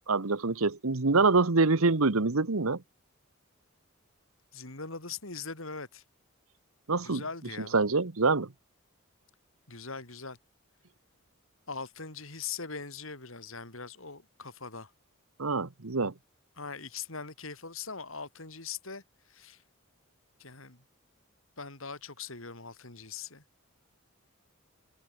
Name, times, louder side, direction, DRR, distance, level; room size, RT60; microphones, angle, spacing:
voice 1, 0.1-2.8 6.9-7.2 7.7-8.5 15.4-16.1, right 3 dB, 80° right, 1.2 m, -25 dB
voice 2, 4.5-6.0 7.0-7.8 9.7-10.4 11.7-14.9 16.6-19.6 20.4-20.8 21.6-23.4, left 5 dB, 65° left, 4.5 m, -41 dB
head